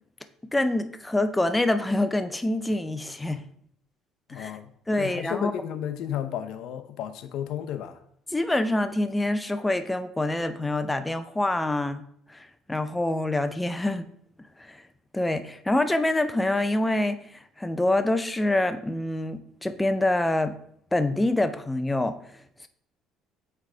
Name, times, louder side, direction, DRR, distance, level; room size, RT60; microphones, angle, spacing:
voice 1, 0.5-3.4 4.3-4.5 4.9-5.5 8.3-12.0 12.3-14.1 14.6-14.8 15.1-20.5 20.9-22.2, left 1 dB, 5° left, 0.3 m, -26 dB
voice 2, 4.3-4.7 5.0-8.0, left 10 dB, 60° left, 0.6 m, -33 dB
8.2 x 3.3 x 3.8 m
cardioid pair, 165°, 0 cm